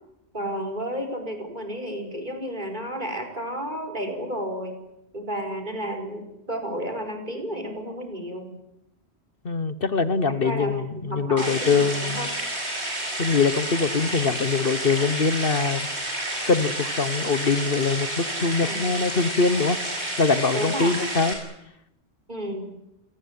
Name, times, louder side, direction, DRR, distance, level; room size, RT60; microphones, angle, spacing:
voice 1, 0.3-4.8 5.1-8.6 10.4-12.3 18.6-18.8 20.5-21.0 22.3-22.7, equal, 45° right, 4 dB, 5.2 m, -32 dB
voice 2, 9.4-12.3 13.2-15.9 16.5-19.8 20.2-21.4, left 4 dB, 55° left, 13 dB, 1.4 m, -23 dB
sound 1, 11.4-21.3, right 1 dB, 80° right, 7.8 m, -30 dB
28.0 x 19.0 x 9.6 m, 0.85 s
omnidirectional pair, 1.1 m